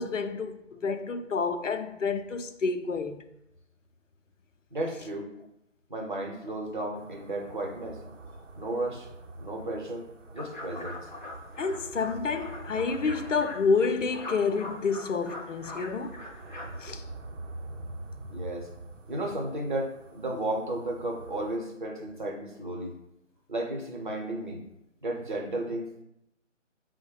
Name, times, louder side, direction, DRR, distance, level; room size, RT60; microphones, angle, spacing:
voice 1, 0.0-3.2 11.6-16.2 16.8-17.0, left 4 dB, 80° left, 0.5 m, -29 dB
voice 2, 4.7-5.3 5.9-8.0 8.6-9.1 9.4-10.1 10.3-11.1 18.3-18.7 19.1-22.9 23.5-24.6 25.0-26.0, right 1 dB, 40° right, 0.8 m, -33 dB
sound 1, 6.9-21.6, right 2 dB, 85° right, 0.6 m, -45 dB
sound 2, 10.4-16.9, left 2 dB, 40° left, 0.6 m, -43 dB
4.6 x 2.1 x 4.6 m
figure-of-eight pair, 160°, 37 cm